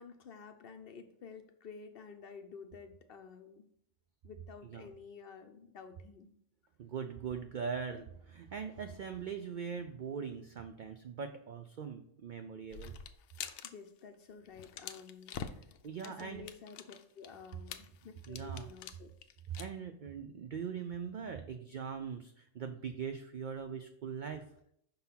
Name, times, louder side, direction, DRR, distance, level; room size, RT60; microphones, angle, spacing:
voice 1, 0.0-3.7 4.2-6.3 13.6-15.7 16.0-19.1, left 5 dB, 55° left, 7 dB, 0.7 m, -51 dB
voice 2, 6.8-13.0 15.8-16.5 18.3-18.7 19.5-24.5, right 6 dB, 90° right, 8 dB, 0.4 m, -41 dB
sound 1, 12.7-13.7 14.0-14.2 14.5-19.6, left 8 dB, 85° left, 1.0 m, -46 dB
5.6 x 3.9 x 5.6 m, 0.71 s
omnidirectional pair, 1.4 m